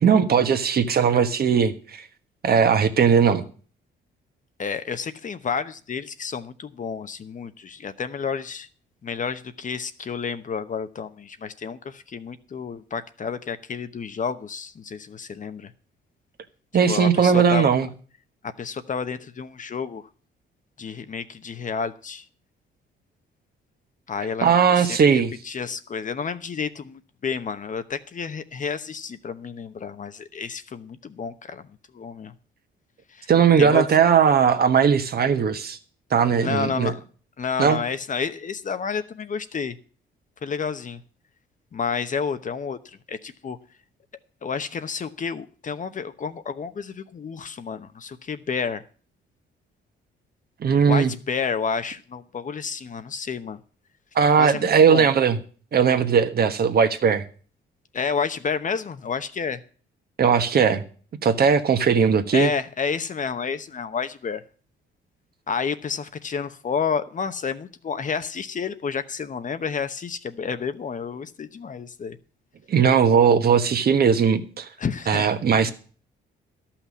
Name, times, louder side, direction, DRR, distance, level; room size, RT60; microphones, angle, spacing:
voice 1, 0.0-2.0 2.4-3.4 16.7-17.9 24.4-25.3 33.3-35.8 36.1-36.9 37.6-37.8 50.6-51.1 54.1-55.4 55.7-57.2 60.2-60.8 61.2-62.5 72.7-74.6 75.1-75.7, right 6 dB, 50° right, 1.4 m, -18 dB
voice 2, 4.6-8.7 9.0-15.7 16.9-17.7 18.6-20.1 20.8-22.2 24.1-31.6 31.9-32.3 33.1-33.3 33.6-33.8 36.4-37.0 37.4-39.8 40.4-41.0 41.7-42.8 43.1-43.6 44.4-48.8 50.8-53.6 54.4-55.1 57.9-59.6 62.3-64.4 65.5-72.2 74.8-75.3 75.6-75.7, left 6 dB, 40° left, 0.9 m, -30 dB
12.5 x 5.9 x 8.4 m
cardioid pair, 90°, 20 cm